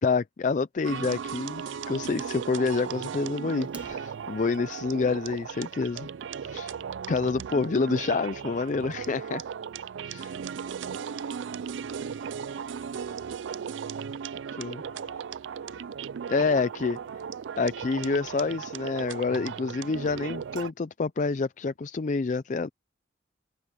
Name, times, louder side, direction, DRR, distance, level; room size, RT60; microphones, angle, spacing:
voice 1, 0.0-6.1 6.4-6.8 7.1-9.4 10.1-10.4 14.5-14.8 16.3-17.0 17.6-22.7, left 4 dB, 40° left, 0.4 m, -28 dB
sound 1, 0.8-20.7, right 7 dB, 90° right, 0.4 m, -36 dB
Fire, 3.6-4.6, right 2 dB, 10° right, 0.9 m, -49 dB
voice 2, 10.6-11.4 11.6-14.0 14.4-17.3, left 2 dB, 65° left, 4.5 m, -58 dB
head